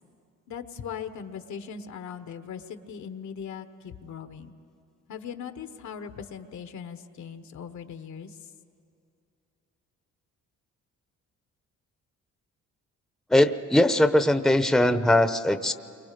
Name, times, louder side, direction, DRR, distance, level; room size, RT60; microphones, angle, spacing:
voice 1, 0.5-4.5 5.1-8.3, left 7 dB, 70° left, 9 dB, 1.4 m, -39 dB
voice 2, 13.3-15.7, left 1 dB, ahead, 9 dB, 0.8 m, -20 dB
29.0 x 24.0 x 5.2 m, 2.5 s
cardioid pair, 90°, 30 cm